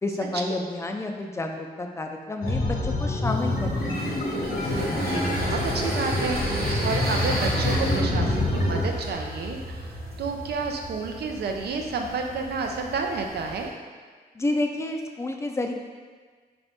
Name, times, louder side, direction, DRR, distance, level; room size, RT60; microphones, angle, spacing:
voice 1, 0.0-4.0 14.3-15.7, left 2 dB, 15° left, 3 dB, 0.3 m, -30 dB
sound 1, 2.4-8.8, left 2 dB, 70° left, 0.9 m, -27 dB
sound 2, 3.3-13.7, right 1 dB, 65° right, 0.8 m, -32 dB
voice 2, 5.1-13.7, right 4 dB, 85° right, 3 dB, 0.5 m, -30 dB
4.0 x 2.6 x 3.4 m, 1.5 s
wide cardioid pair, 95°, 17 cm